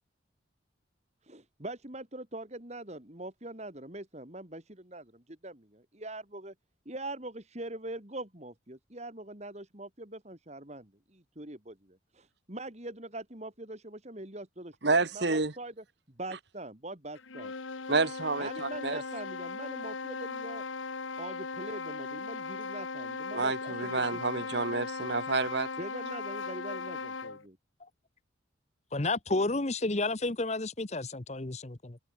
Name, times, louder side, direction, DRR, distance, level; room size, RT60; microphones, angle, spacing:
voice 1, 1.2-6.5 6.9-15.8 16.2-17.5 18.4-20.6 21.2-24.5 25.8-27.6, right 2 dB, 35° right, 2.6 m, -43 dB
voice 2, 14.8-15.5 17.9-19.0 23.3-25.7, right 3 dB, 60° right, 1.4 m, -29 dB
sound 1, 17.2-27.5, left 4 dB, 80° left, 1.4 m, -38 dB
voice 3, 28.9-32.0, left 2 dB, 35° left, 1.0 m, -31 dB
head